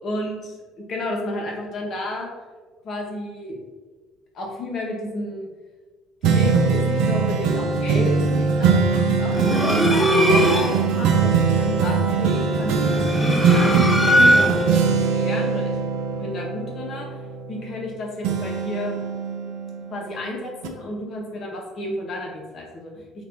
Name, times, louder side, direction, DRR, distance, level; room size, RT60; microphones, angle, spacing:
voice 1, 0.0-2.3 2.8-3.6 4.3-5.5 6.2-15.8 16.1-17.1 17.5-19.0 19.9-23.2, left 1 dB, 55° left, -1 dB, 0.9 m, -32 dB
sound 1, 6.2-17.9 18.2-20.1 20.6-20.7, right 5 dB, 75° right, 0.4 m, -21 dB
sound 2, 9.3-10.9 12.8-14.8, equal, 15° left, 0.5 m, -19 dB
2.8 x 2.5 x 3.5 m, 1.3 s
hypercardioid pair, 70°, 0 cm